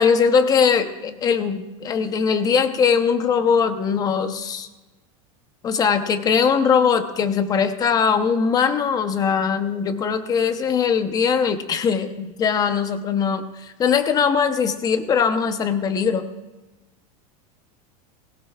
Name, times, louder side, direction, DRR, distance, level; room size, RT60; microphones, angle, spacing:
voice 1, 0.0-4.7 5.6-16.3, left 6 dB, 20° left, 9 dB, 0.8 m, -21 dB
19.5 x 17.0 x 2.4 m, 1.1 s
supercardioid pair, 155°, 19 cm